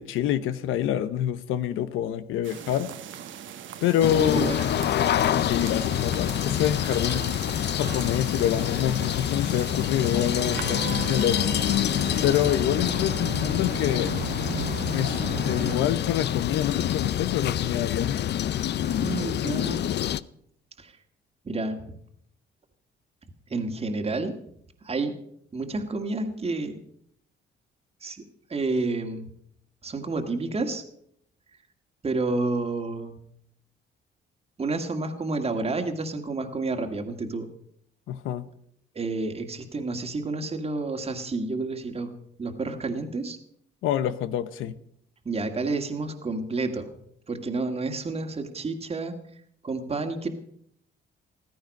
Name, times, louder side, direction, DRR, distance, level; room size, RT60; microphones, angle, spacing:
voice 1, 0.0-2.9 3.8-4.5 5.3-7.3 7.8-11.4 12.2-14.2 14.9-15.2 15.4-18.2 38.1-38.5 43.8-44.7, left 11 dB, 90° left, 0.8 m, -26 dB
sound 1, 2.4-12.5, right 9 dB, 75° right, 1.1 m, -41 dB
sound 2, 4.0-20.2, left 11 dB, 60° left, 0.5 m, -27 dB
voice 2, 4.1-4.6 18.8-19.8 20.8-20.9 21.5-21.8 23.5-24.3 24.8-25.1 25.5-26.7 28.0-28.2 28.5-29.3 29.8-30.8 32.0-33.2 34.6-37.5 38.9-42.1 42.4-43.4 45.3-46.9 47.3-49.2 49.6-50.3, right 3 dB, 30° right, 1.8 m, -29 dB
Vehicle horn car horn honking / Traffic noise roadway noise, 10.1-15.8, right 11 dB, 50° right, 0.5 m, -36 dB
15.0 x 13.5 x 5.3 m
cardioid pair, 90°, 20 cm